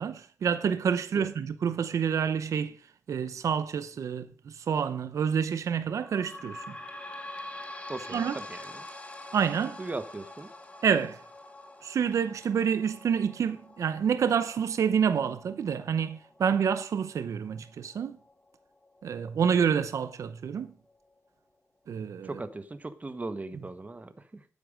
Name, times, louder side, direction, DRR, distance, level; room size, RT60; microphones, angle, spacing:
voice 1, 0.0-2.8 3.1-6.8 8.1-8.4 9.3-9.8 10.8-11.2 11.8-18.2 19.0-20.7 21.9-22.3, right 7 dB, 90° right, 0.8 m, -28 dB
sound 1, 5.9-19.0 19.6-19.7 20.0-20.1 20.9-21.0, left 1 dB, 25° left, 1.9 m, -46 dB
voice 2, 7.9-8.9 9.8-10.5 22.2-24.5, right 2 dB, 30° right, 1.4 m, -38 dB
11.5 x 9.5 x 5.1 m
cardioid pair, 75°, 5 cm